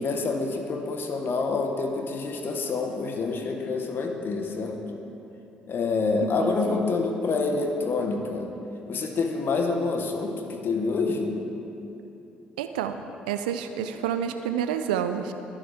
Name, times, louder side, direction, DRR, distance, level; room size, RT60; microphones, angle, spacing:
voice 1, 0.0-4.8 5.7-8.5 8.9-11.3, left 4 dB, 50° left, 3 dB, 1.4 m, -27 dB
voice 2, 6.2-6.9 12.6-15.3, right 8 dB, 80° right, 8 dB, 0.5 m, -29 dB
22.5 x 7.6 x 3.6 m, 2.9 s
hypercardioid pair, 50°, 5 cm